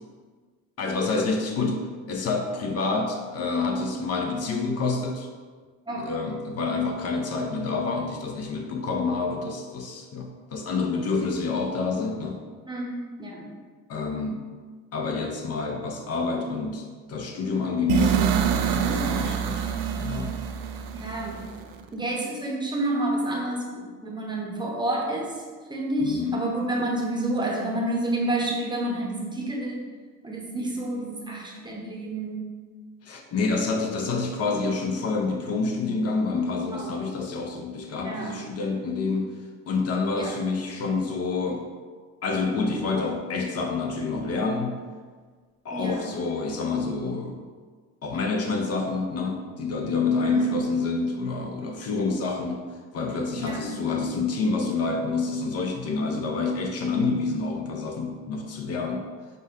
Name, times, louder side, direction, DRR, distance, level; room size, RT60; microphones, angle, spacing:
voice 1, 0.8-5.3 6.0-12.4 13.9-14.5 14.9-19.6 20.0-20.4 26.0-26.4 33.0-39.3 39.7-41.6 42.2-44.8 45.6-47.4 48.0-52.6 52.9-59.1, left 4 dB, 45° left, 3 dB, 0.5 m, -28 dB
voice 2, 12.7-13.5 18.9-19.1 20.9-21.4 21.9-25.4 25.7-29.8 30.2-32.5 36.6-37.1 38.0-38.4 40.1-40.4 45.7-46.1 50.2-50.6 53.4-53.7, right 1 dB, 15° right, -2 dB, 0.7 m, -29 dB
sound 1, 17.9-21.8, right 8 dB, 75° right, 0.5 m, -26 dB
5.2 x 2.2 x 3.6 m, 1.5 s
cardioid pair, 100°, 34 cm